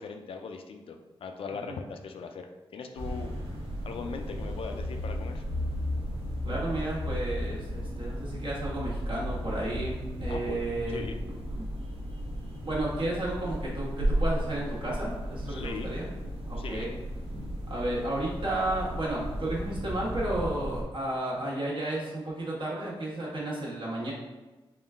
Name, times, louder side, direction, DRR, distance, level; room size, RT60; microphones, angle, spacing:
voice 1, 0.0-3.4 3.8-5.4 10.3-10.6 10.9-11.2 15.5-15.9 16.6-16.9, left 5 dB, 70° left, 5 dB, 0.4 m, -39 dB
sound 1, 3.0-20.8, equal, 85° right, 0.9 m, -34 dB
voice 2, 6.4-11.6 12.6-16.1 16.5-16.9 17.7-24.1, right 1 dB, 60° right, -5 dB, 1.3 m, -33 dB
3.7 x 2.3 x 3.5 m, 1.1 s
wide cardioid pair, 100°, 10 cm